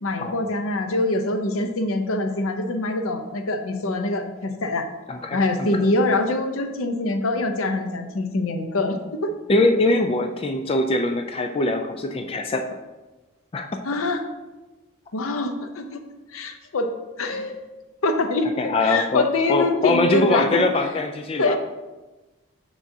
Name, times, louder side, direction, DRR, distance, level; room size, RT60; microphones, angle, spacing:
voice 1, 0.0-4.9 5.3-9.3 13.8-14.2 15.1-16.0 16.3-17.6 18.0-18.5 18.8-20.6 21.4-21.6, left 2 dB, 85° left, 6 dB, 0.7 m, -24 dB
voice 2, 5.1-5.4 9.5-12.6 13.5-13.7 18.6-21.6, left 2 dB, 25° left, 5 dB, 0.3 m, -22 dB
6.4 x 6.1 x 2.7 m, 1.2 s
head